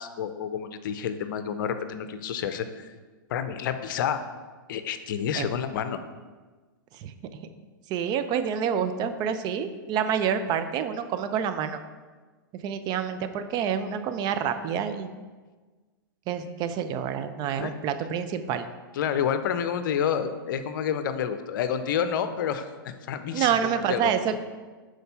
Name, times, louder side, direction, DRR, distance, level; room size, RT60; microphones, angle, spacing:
voice 1, 0.0-2.9 3.3-4.2 4.7-6.0 17.6-17.7 19.0-24.1, left 8 dB, 65° left, 10 dB, 0.6 m, -29 dB
voice 2, 7.9-11.8 12.5-15.1 16.3-18.7 23.3-24.4, right 8 dB, 35° right, 9 dB, 0.5 m, -28 dB
6.6 x 4.5 x 5.6 m, 1.4 s
hypercardioid pair, 115°, 12 cm